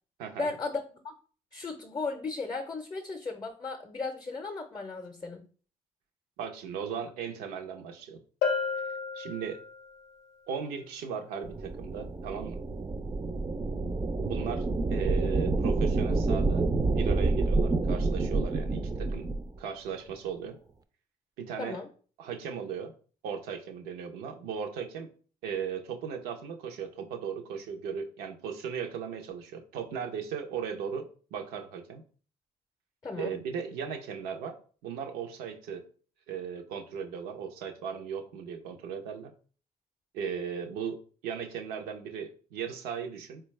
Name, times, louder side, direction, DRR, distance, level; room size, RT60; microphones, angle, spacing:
voice 1, 0.4-1.1 1.5-5.4 21.6-21.9 33.0-33.3, left 3 dB, 25° left, 5 dB, 0.5 m, -36 dB
voice 2, 6.4-8.2 9.1-9.6 10.5-12.6 14.2-16.6 17.0-19.3 19.6-20.6 21.4-21.8 22.2-22.9 23.2-25.1 25.4-32.0 33.2-34.6 34.8-35.8 36.3-39.3 40.1-41.0 41.2-43.4, right 7 dB, 85° right, 4 dB, 0.5 m, -37 dB
Bell, 8.4-10.0, left 5 dB, 85° left, 0.5 m, -32 dB
sound 1, 11.4-19.5, right 3 dB, 25° right, 0.4 m, -28 dB
3.9 x 2.2 x 3.1 m, 0.41 s
supercardioid pair, 65°, 16 cm